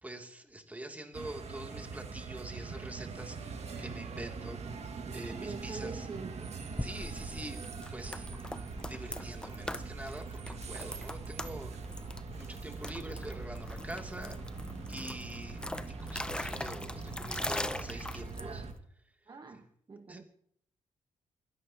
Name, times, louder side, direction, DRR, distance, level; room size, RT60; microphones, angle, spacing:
voice 1, 0.0-4.8 5.1-6.1 6.8-7.6 7.9-8.3 8.5-11.7 12.3-14.4 14.9-15.6 16.0-18.7 19.5-19.6 20.1-20.2, right 1 dB, 10° right, 2.7 m, -45 dB
sound 1, 1.1-18.7, right 4 dB, 55° right, 2.0 m, -43 dB
voice 2, 5.3-6.5 9.1-9.9 19.3-20.2, right 4 dB, 30° right, 1.2 m, -46 dB
sound 2, 6.7-18.8, left 1 dB, 5° left, 0.7 m, -41 dB
23.5 x 17.5 x 2.9 m
cardioid pair, 105°, 13 cm